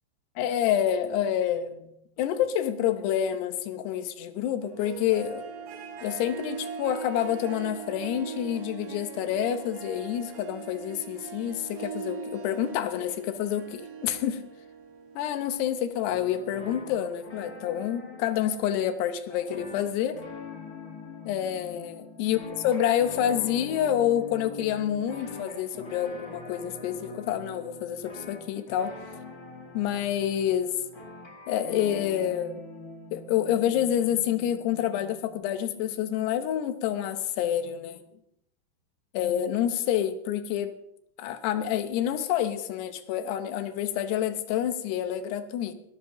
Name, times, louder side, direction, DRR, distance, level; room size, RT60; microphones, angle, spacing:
voice 1, 0.4-1.9 2.2-5.5 6.0-14.4 15.2-20.2 21.3-22.4 22.6-29.0 29.7-30.8 31.5-32.6 33.1-38.0 39.1-40.8 41.2-45.7, left 10 dB, 80° left, 10 dB, 3.0 m, -28 dB
Harp, 4.6-15.8, right 6 dB, 65° right, 3.1 m, -41 dB
sound 1, 16.0-35.4, left 3 dB, 40° left, 1.2 m, -44 dB
20.0 x 13.0 x 3.0 m, 0.78 s
omnidirectional pair, 4.8 m